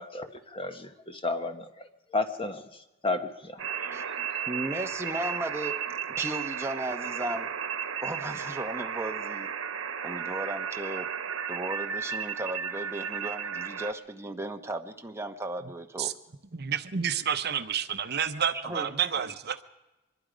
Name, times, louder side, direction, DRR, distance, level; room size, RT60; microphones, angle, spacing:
voice 1, 0.0-1.7 2.1-2.6 3.0-3.6 4.0-4.5, left 3 dB, 25° left, 7 dB, 1.2 m, -32 dB
sound 1, 3.6-13.9, right 7 dB, 85° right, 1.1 m, -34 dB
voice 2, 3.8-7.5 8.0-9.5 10.0-11.1 11.5-16.1 18.5-18.9, right 1 dB, 15° right, 5 dB, 1.0 m, -36 dB
voice 3, 16.5-19.6, right 8 dB, 55° right, 10 dB, 0.9 m, -29 dB
24.0 x 22.0 x 5.2 m, 1.0 s
head